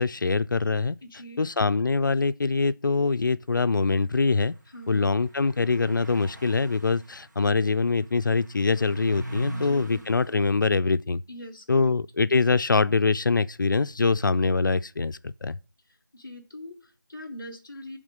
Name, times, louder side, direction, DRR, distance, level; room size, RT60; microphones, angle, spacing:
voice 1, 0.0-1.0 1.4-4.6 4.9-11.2 11.7-15.6, left 4 dB, 70° left, 0.4 m, -24 dB
voice 2, 1.0-1.4 4.7-5.1 9.5-10.3 11.3-11.9 15.9-18.0, left 1 dB, 5° left, 0.6 m, -43 dB
sound 1, 4.7-4.8 5.3-10.4, right 1 dB, 55° right, 1.9 m, -40 dB
8.3 x 3.7 x 6.4 m
figure-of-eight pair, 180°, 11 cm